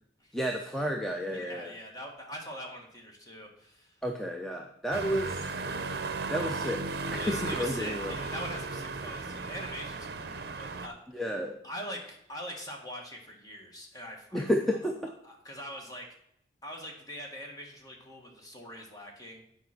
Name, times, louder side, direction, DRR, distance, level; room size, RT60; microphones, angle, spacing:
voice 1, 0.3-1.7 4.0-5.5 6.3-8.2 11.1-11.6 14.3-15.1, equal, ahead, 2 dB, 0.6 m, -31 dB
voice 2, 1.3-4.0 7.1-11.0 11.6-14.4 15.2-16.2 16.6-19.4, equal, 20° left, 0 dB, 1.7 m, -43 dB
Sonicsnaps-OM-FR-motos+voitures, 4.9-10.9, right 3 dB, 55° right, 0.7 m, -35 dB
9.3 x 5.0 x 5.9 m, 0.74 s
head